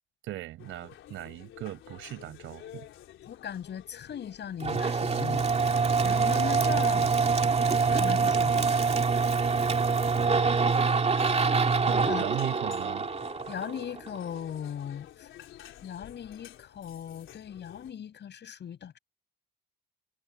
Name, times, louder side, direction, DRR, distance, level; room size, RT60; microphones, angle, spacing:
voice 1, 0.2-2.9 10.2-10.7 11.9-13.1, right 14 dB, 85° right, 5.3 m, -38 dB
sound 1, 0.6-17.9, left 12 dB, 80° left, 4.3 m, -51 dB
voice 2, 3.3-5.5 6.0-7.1 7.9-8.7 12.1-12.3 13.5-15.3 15.8-19.0, left 9 dB, 60° left, 6.8 m, -38 dB
sound 2, 4.6-14.2, right 4 dB, 30° right, 2.4 m, -25 dB
cardioid pair, 90°, 20 cm